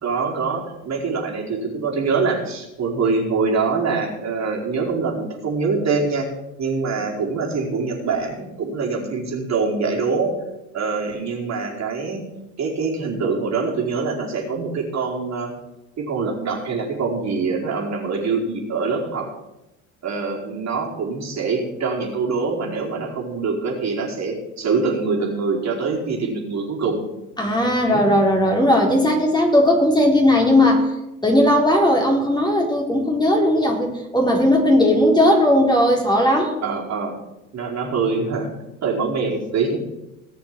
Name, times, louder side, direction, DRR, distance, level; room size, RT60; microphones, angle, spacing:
voice 1, 0.0-6.3 6.6-10.3 10.7-12.2 12.6-15.5 16.0-19.3 20.0-27.0 27.8-28.0 36.6-37.2 37.5-38.5 38.8-39.9, right 4 dB, 45° right, -2 dB, 4.6 m, -24 dB
voice 2, 27.4-30.9 31.2-36.6, left 1 dB, 10° left, 0 dB, 3.9 m, -17 dB
19.0 x 7.0 x 7.6 m, 0.94 s
figure-of-eight pair, 60°, 38 cm